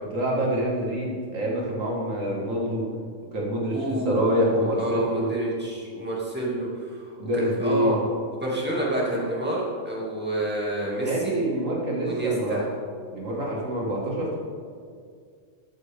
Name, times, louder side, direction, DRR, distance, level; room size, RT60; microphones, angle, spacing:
voice 1, 0.1-2.9 3.3-5.3 7.2-8.0 11.0-12.6 13.1-14.4, equal, 90° right, -3 dB, 2.4 m, -26 dB
voice 2, 3.7-8.0 8.3-11.4 12.0-12.6, right 1 dB, 10° right, -5 dB, 2.4 m, -29 dB
14.0 x 9.0 x 3.6 m, 2.1 s
omnidirectional pair, 1.3 m